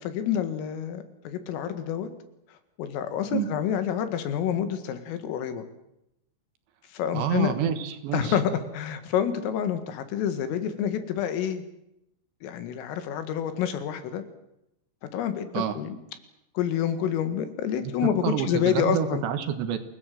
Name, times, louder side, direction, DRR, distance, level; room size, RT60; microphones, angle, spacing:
voice 1, 0.0-2.1 2.8-5.6 6.9-7.5 8.1-11.6 12.4-14.2 15.1-16.0 16.6-19.2, left 9 dB, 80° left, 9 dB, 4.5 m, -28 dB
voice 2, 7.1-8.4 15.5-15.8 17.8-19.8, right 8 dB, 70° right, 9 dB, 3.4 m, -28 dB
27.5 x 18.0 x 7.9 m, 0.86 s
omnidirectional pair, 5.8 m